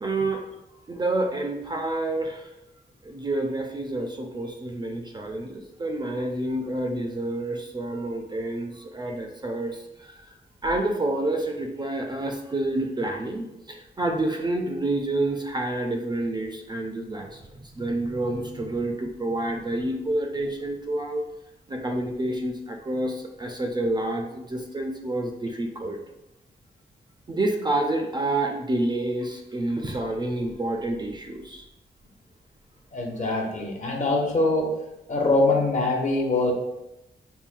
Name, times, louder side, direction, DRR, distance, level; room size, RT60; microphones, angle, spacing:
voice 1, 0.0-0.4 0.9-2.5 3.0-10.2 10.6-21.2 21.7-26.0 27.3-31.6, right 2 dB, 25° right, 2 dB, 0.3 m, -28 dB
voice 2, 32.9-34.8 35.1-36.5, left 2 dB, 45° left, 1 dB, 0.7 m, -23 dB
5.5 x 2.1 x 2.5 m, 0.89 s
wide cardioid pair, 140°, 18 cm